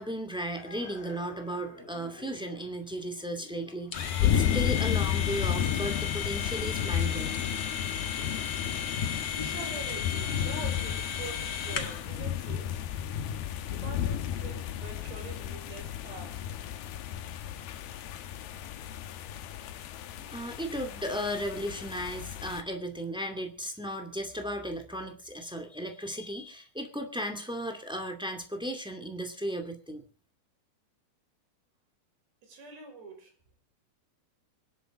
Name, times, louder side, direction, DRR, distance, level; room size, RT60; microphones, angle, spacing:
voice 1, 0.0-7.4 20.2-30.0, equal, 5° right, 4 dB, 0.4 m, -35 dB
sound 1, 0.6-7.0, left 3 dB, 30° left, 1.3 m, -52 dB
sound 2, 3.9-12.1, left 8 dB, 55° left, 1.6 m, -35 dB
sound 3, 4.0-22.6, left 10 dB, 70° left, 2.9 m, -33 dB
voice 2, 9.1-12.8 13.7-16.5 32.4-33.3, right 3 dB, 75° right, 3 dB, 7.5 m, -45 dB
25.5 x 11.5 x 3.8 m, 0.36 s
omnidirectional pair, 4.9 m